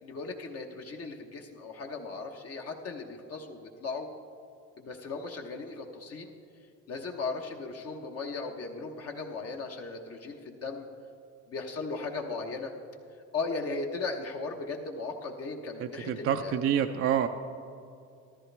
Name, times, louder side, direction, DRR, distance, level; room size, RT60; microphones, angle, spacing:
voice 1, 0.0-4.1 4.8-6.3 6.9-10.9 11.5-12.7 13.3-16.6, left 3 dB, 50° left, 1 dB, 1.1 m, -37 dB
voice 2, 15.8-17.3, right 9 dB, 45° right, 6 dB, 0.5 m, -27 dB
13.5 x 13.0 x 3.3 m, 2.5 s
cardioid pair, 105°, 31 cm